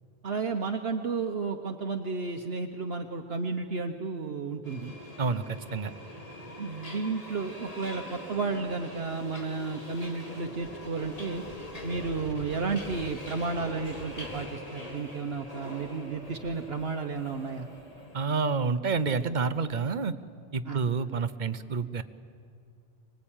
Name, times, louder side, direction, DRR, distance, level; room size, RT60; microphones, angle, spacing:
voice 1, 0.2-4.9 6.6-11.4 11.8-17.7 20.6-20.8, right 4 dB, 60° right, 4 dB, 1.2 m, -32 dB
Subway metro underground, 4.6-18.3, left 1 dB, 35° left, 2.4 m, -43 dB
voice 2, 5.2-5.9 18.1-20.1 20.5-22.0, right 4 dB, 45° right, 12 dB, 0.9 m, -28 dB
24.5 x 20.0 x 8.9 m, 2.4 s
omnidirectional pair, 1.2 m